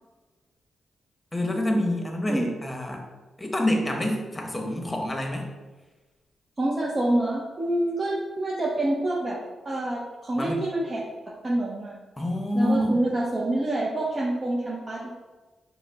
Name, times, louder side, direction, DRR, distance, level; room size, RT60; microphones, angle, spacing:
voice 1, 1.3-3.0 3.4-5.5 10.3-10.6 12.2-13.0, left 1 dB, 20° left, 2 dB, 0.9 m, -27 dB
voice 2, 6.6-9.4 9.6-11.0 11.4-11.9 12.5-15.1, right 1 dB, 30° right, -4 dB, 0.7 m, -27 dB
5.4 x 2.1 x 3.9 m, 1.2 s
cardioid pair, 70°, 0 cm